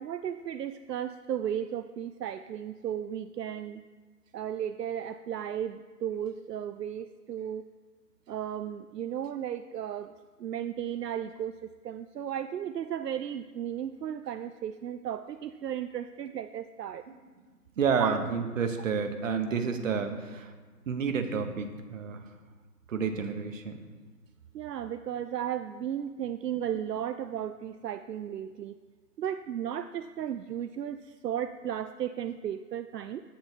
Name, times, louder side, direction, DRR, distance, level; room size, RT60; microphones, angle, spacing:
voice 1, 0.0-3.8 4.3-7.6 8.3-10.1 10.4-11.5 11.8-17.0 18.0-18.2 24.5-28.8 29.2-33.2, right 9 dB, 80° right, 11 dB, 0.6 m, -35 dB
voice 2, 17.8-20.5 20.9-22.2 22.9-23.8, right 6 dB, 55° right, 7 dB, 1.2 m, -30 dB
13.0 x 9.5 x 2.8 m, 1.5 s
hypercardioid pair, 150°, 48 cm